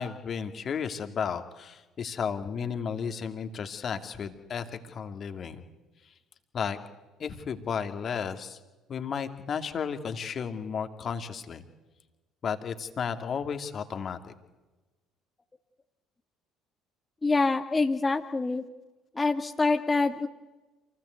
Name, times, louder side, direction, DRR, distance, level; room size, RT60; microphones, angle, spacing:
voice 1, 0.0-5.6 6.5-6.8 7.2-8.6 8.9-11.6 12.4-14.3, left 6 dB, 45° left, 8 dB, 2.3 m, -33 dB
voice 2, 17.2-18.6 19.1-20.3, left 3 dB, 20° left, 4 dB, 1.7 m, -25 dB
27.5 x 19.5 x 8.2 m, 1.2 s
hypercardioid pair, 55°, 0 cm